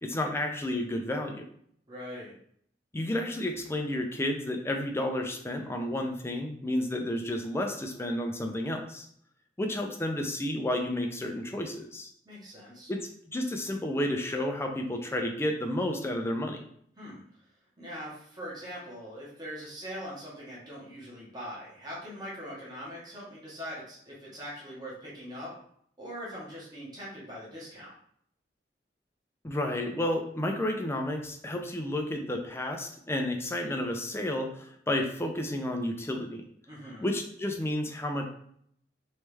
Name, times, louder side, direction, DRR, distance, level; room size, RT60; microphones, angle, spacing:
voice 1, 0.0-1.5 2.9-9.1 9.6-12.1 12.9-13.0 13.3-16.7 29.4-36.4 37.0-38.2, left 1 dB, 15° left, 3 dB, 0.5 m, -31 dB
voice 2, 1.9-2.3 12.2-12.9 17.0-17.2 17.8-25.6 26.0-27.9 36.7-37.1, equal, 25° right, -7 dB, 1.2 m, -42 dB
3.3 x 3.2 x 3.3 m, 0.66 s
head